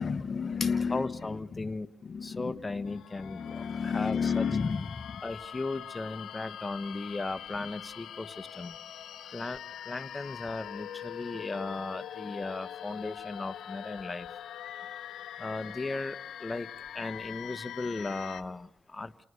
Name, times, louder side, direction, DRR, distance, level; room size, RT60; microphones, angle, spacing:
voice 1, 0.0-1.1 2.1-2.5 3.3-5.0, left 5 dB, 50° left, 11 dB, 1.1 m, -30 dB
voice 2, 0.9-1.9 2.2-4.5 5.2-8.7 9.3-9.6 9.9-14.3 15.4-16.7 16.9-19.1, left 3 dB, 25° left, 12 dB, 1.3 m, -36 dB
sound 1, 2.9-18.4, left 10 dB, 85° left, 0.9 m, -43 dB
29.0 x 19.5 x 6.7 m, 0.78 s
cardioid pair, 70°, 0 cm